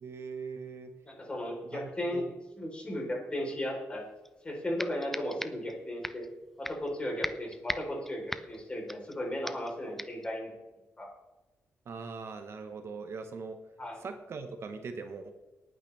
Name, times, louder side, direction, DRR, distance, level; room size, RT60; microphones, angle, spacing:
voice 1, 0.0-0.9 1.7-2.3 11.9-13.6 14.0-15.3, right 4 dB, 55° right, 7 dB, 1.1 m, -41 dB
voice 2, 1.1-2.3 2.6-4.0 4.4-6.3 6.6-10.5 11.0-11.1 13.8-14.0, left 1 dB, 20° left, -1 dB, 3.8 m, -35 dB
sound 1, 4.2-4.3 4.8-5.7 6.0-6.3 6.6-6.9 7.2-9.2 9.5-9.7 10.0-10.3, left 1 dB, 5° left, 0.5 m, -38 dB
19.0 x 9.1 x 3.4 m, 1.1 s
wide cardioid pair, 155°, 5 cm